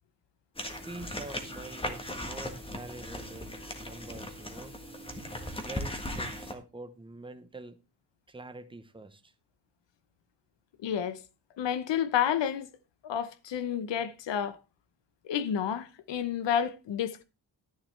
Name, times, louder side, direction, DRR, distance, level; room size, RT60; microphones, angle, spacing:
sound 1, 0.6-6.5, left 1 dB, 15° left, 1.5 m, -38 dB
voice 1, 0.8-4.7 5.6-7.8 8.3-9.3, right 2 dB, 10° right, 0.9 m, -45 dB
voice 2, 10.8-11.2 11.6-12.7 13.0-14.6 15.2-17.2, left 9 dB, 85° left, 1.0 m, -30 dB
11.5 x 10.5 x 3.3 m
wide cardioid pair, 150°, 42 cm